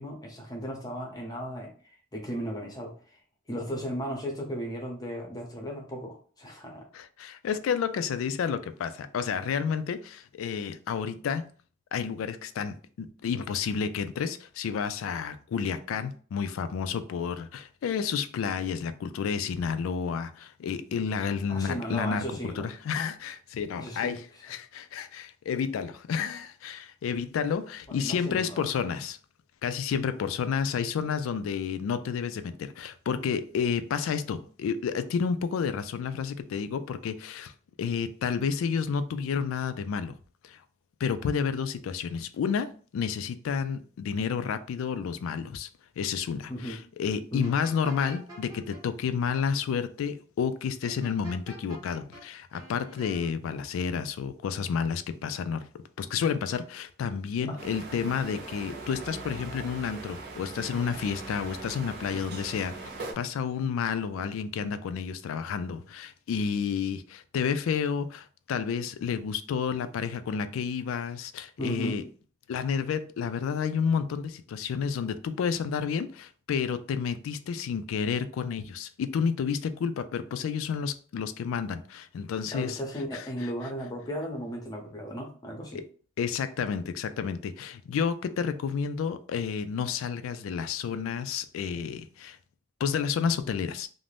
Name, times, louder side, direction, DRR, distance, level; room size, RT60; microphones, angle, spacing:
voice 1, 0.0-3.2 3.5-6.8 21.5-22.7 23.8-24.2 27.9-28.7 46.5-46.8 47.3-47.5 57.5-57.6 62.1-62.2 71.6-72.0 82.5-85.8, equal, 20° left, 0.6 m, -36 dB
voice 2, 6.9-11.5 11.9-29.2 29.6-37.5 37.8-40.2 40.4-40.6 41.0-45.7 46.0-62.9 63.2-72.0 72.5-82.8 83.1-83.5 85.7-85.8 86.2-92.4 92.8-93.9, left 6 dB, 90° left, 0.3 m, -30 dB
sound 1, 47.4-48.8 50.8-52.2 52.5-53.3, equal, 20° right, 0.8 m, -47 dB
sound 2, 57.6-63.1, right 3 dB, 50° right, 0.6 m, -41 dB
2.5 x 2.1 x 3.2 m
head